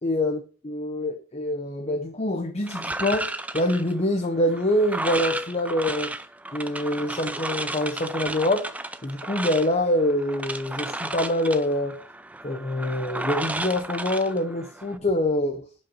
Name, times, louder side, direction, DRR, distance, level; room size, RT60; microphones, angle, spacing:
voice 1, 0.0-6.1 6.5-8.7 9.0-12.0 12.4-15.7, left 1 dB, 30° left, 0.7 m, -25 dB
sound 1, 2.7-15.0, right 2 dB, 5° right, 0.4 m, -33 dB
7.3 x 5.6 x 5.6 m
head